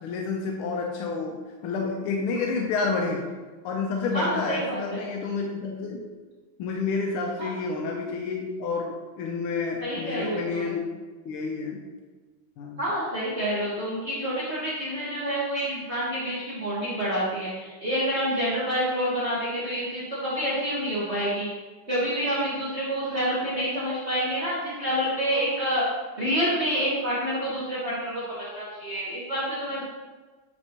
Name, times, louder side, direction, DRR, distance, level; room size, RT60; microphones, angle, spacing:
voice 1, 0.0-3.2 3.6-6.0 6.6-10.8 11.2-11.8 12.6-12.8, left 4 dB, 90° left, 0 dB, 1.6 m, -29 dB
voice 2, 4.1-5.0 7.4-7.5 9.8-10.6 12.8-21.5 21.9-25.8 26.2-29.8, equal, 35° right, -9 dB, 1.5 m, -28 dB
9.1 x 4.3 x 2.9 m, 1.3 s
omnidirectional pair, 2.3 m